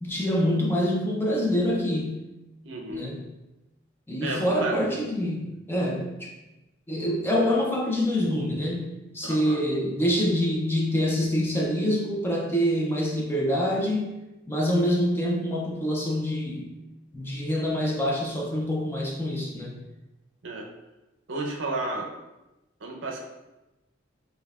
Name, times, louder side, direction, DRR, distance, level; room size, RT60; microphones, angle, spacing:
voice 1, 0.0-2.2 2.9-3.3 4.1-6.3 6.9-8.9 9.1-14.1 14.5-16.7 17.1-19.7, equal, 10° left, -2 dB, 0.4 m, -26 dB
voice 2, 2.6-3.0 4.2-4.8 9.2-9.7 20.4-20.7 21.3-22.1 22.8-23.2, right 2 dB, 75° right, 0 dB, 0.6 m, -32 dB
5.3 x 2.2 x 2.3 m, 1.0 s
head